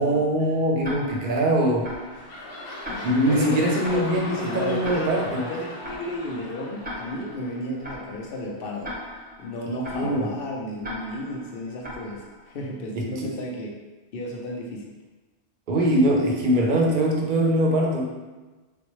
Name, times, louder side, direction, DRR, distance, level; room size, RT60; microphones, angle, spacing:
voice 1, 0.0-1.9 3.0-5.5 9.9-10.3 13.0-13.3 15.7-18.1, right 1 dB, 55° right, -1 dB, 0.7 m, -22 dB
Tick-tock, 0.8-12.7, equal, 10° right, 0.6 m, -40 dB
sound 1, 1.5-8.1 8.6-8.7, left 1 dB, 85° left, 1.1 m, -38 dB
voice 2, 2.9-3.6 3.9-8.9 9.4-13.7 14.1-14.9, left 1 dB, 60° left, 0 dB, 0.8 m, -33 dB
4.1 x 2.2 x 3.0 m, 1.2 s
omnidirectional pair, 1.2 m